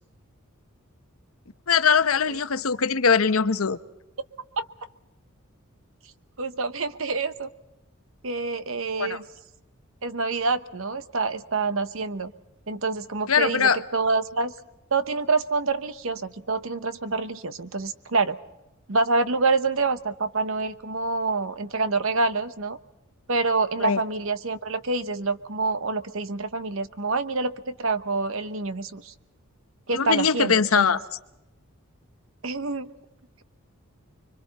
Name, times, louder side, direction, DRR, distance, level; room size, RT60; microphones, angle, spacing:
voice 1, 1.7-3.8 9.0-9.2 13.3-13.8 23.8-24.0 29.9-31.0, left 6 dB, 75° left, 0.9 m, -21 dB
voice 2, 6.4-7.5 8.2-9.2 10.0-12.3 12.7-14.5 14.9-18.4 18.9-22.8 23.3-29.1 29.9-30.9 32.4-32.9, right 3 dB, 65° right, 1.0 m, -27 dB
30.0 x 23.5 x 4.2 m
head